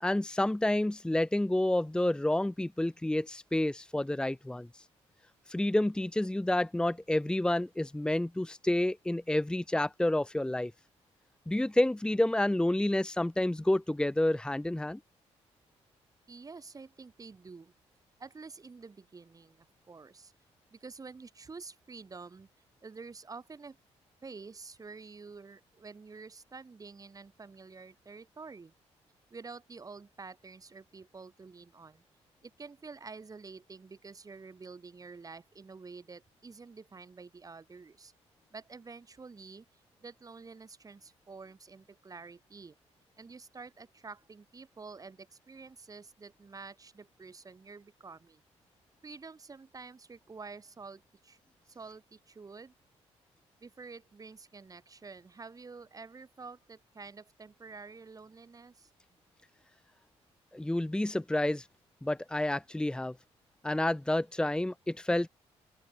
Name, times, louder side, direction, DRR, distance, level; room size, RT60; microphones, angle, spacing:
voice 1, 0.0-4.7 5.5-10.7 11.5-15.0 60.5-61.7 62.0-63.1 63.6-65.3, left 1 dB, 5° left, 1.1 m, -29 dB
voice 2, 16.3-17.7 18.2-20.3 20.7-22.5 22.8-23.8 24.2-28.7 29.3-32.0 32.4-38.1 38.5-42.7 43.2-48.4 49.0-51.4 51.7-52.7 53.6-58.9, right 4 dB, 30° right, 6.6 m, -49 dB
open air
cardioid pair, 105°, 12 cm